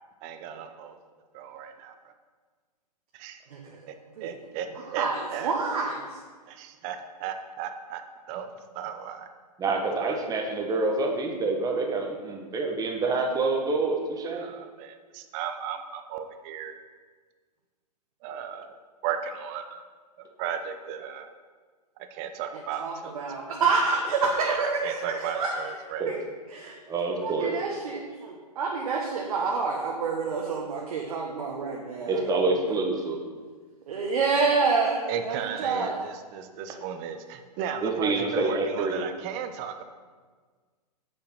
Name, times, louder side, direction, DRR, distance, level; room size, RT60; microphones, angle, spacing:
voice 1, 0.2-1.0 1.3-1.9 3.1-3.4 3.9-4.0 4.2-5.5 6.5-8.0 8.3-9.3 10.0-10.2 14.3-16.8 18.2-18.8 19.0-19.8 20.4-21.3 22.1-23.2 24.4-26.0 35.1-39.8, right 8 dB, 35° right, 8 dB, 0.9 m, -35 dB
voice 2, 3.5-3.9 4.2-4.3 4.9-6.0 22.8-25.7 26.1-26.2 26.5-26.7 27.2-32.2 32.5-32.8 33.9-36.0, right 4 dB, 60° right, -1 dB, 1.4 m, -28 dB
voice 3, 9.6-14.4 26.0-26.2 26.9-27.5 32.1-33.2 37.8-39.0, right 3 dB, 15° right, 2 dB, 1.4 m, -27 dB
7.8 x 7.1 x 5.8 m, 1.5 s
figure-of-eight pair, 115°, 21 cm